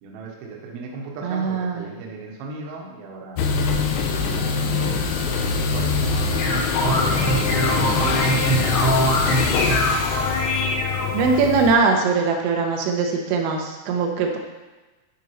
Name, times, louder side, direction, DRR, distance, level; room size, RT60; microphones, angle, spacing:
voice 1, 0.0-3.5 4.1-6.4 6.8-9.6, right 3 dB, 70° right, -1 dB, 2.4 m, -36 dB
voice 2, 1.2-1.9 11.1-14.4, right 4 dB, 90° right, 2 dB, 3.4 m, -21 dB
sound 1, 3.4-11.8, left 5 dB, 80° left, 3.1 m, -24 dB
sound 2, 6.1-11.4, equal, 60° left, 2.7 m, -23 dB
11.0 x 5.0 x 3.1 m, 1.2 s
omnidirectional pair, 5.8 m